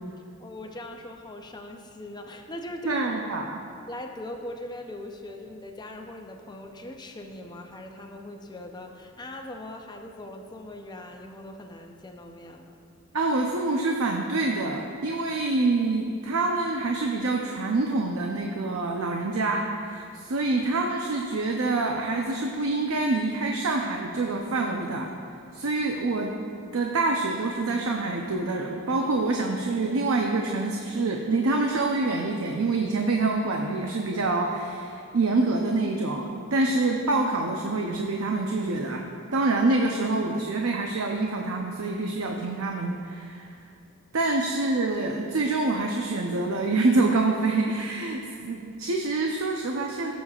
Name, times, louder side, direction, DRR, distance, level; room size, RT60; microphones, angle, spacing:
voice 1, 0.4-3.1 3.9-12.8 44.3-44.4, left 1 dB, 20° left, 3 dB, 0.6 m, -40 dB
voice 2, 2.8-3.6 13.1-25.1 25.5-26.3 26.7-39.0 39.3-43.5 44.1-50.1, right 3 dB, 75° right, 1 dB, 0.6 m, -26 dB
15.5 x 7.2 x 2.4 m, 2.4 s
head